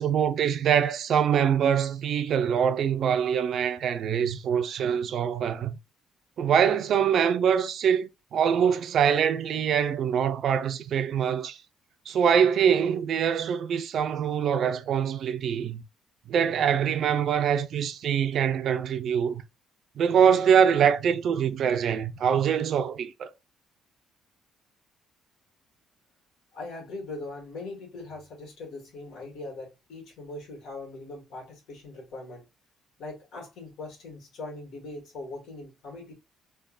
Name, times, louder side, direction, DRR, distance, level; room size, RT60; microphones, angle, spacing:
voice 1, 0.0-5.8 6.4-11.6 12.1-15.8 16.3-19.4 20.0-23.3, right 8 dB, 55° right, 0.5 m, -24 dB
voice 2, 26.5-32.5 33.0-36.1, left 2 dB, 70° left, 1.6 m, -40 dB
3.5 x 2.3 x 2.3 m
cardioid pair, 130°, 0 cm